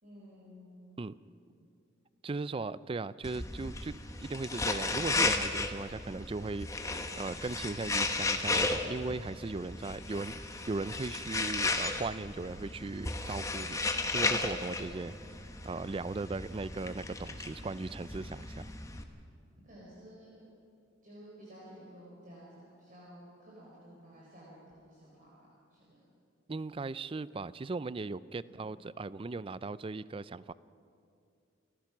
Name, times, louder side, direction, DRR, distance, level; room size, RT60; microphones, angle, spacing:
voice 1, 0.0-1.3 19.6-20.4 21.0-26.0, equal, 45° right, -6 dB, 4.7 m, -53 dB
voice 2, 2.2-3.9 4.2-13.8 14.1-15.1 15.6-18.6 26.5-30.5, right 3 dB, 30° right, 17 dB, 0.4 m, -38 dB
sound 1, 3.2-19.0, left 3 dB, 15° left, 1.1 m, -35 dB
29.0 x 15.0 x 6.1 m, 2.5 s
head